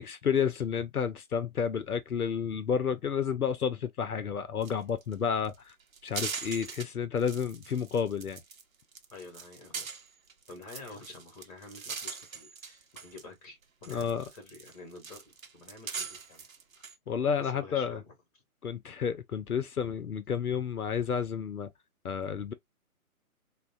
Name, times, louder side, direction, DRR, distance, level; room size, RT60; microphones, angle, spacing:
voice 1, 0.0-5.7 6.0-8.4 13.9-14.2 17.1-18.0 18.6-21.7 22.0-22.5, left 7 dB, 85° left, 0.6 m, -31 dB
sound 1, 4.6-4.7 5.0-5.1 5.4-6.8 7.2-8.6 8.9-13.2 13.6-17.0, right 6 dB, 70° right, 0.7 m, -41 dB
voice 2, 9.1-9.9 10.5-16.5 17.4-18.1, left 3 dB, 25° left, 1.2 m, -49 dB
3.5 x 2.2 x 2.4 m
figure-of-eight pair, 135°, 43 cm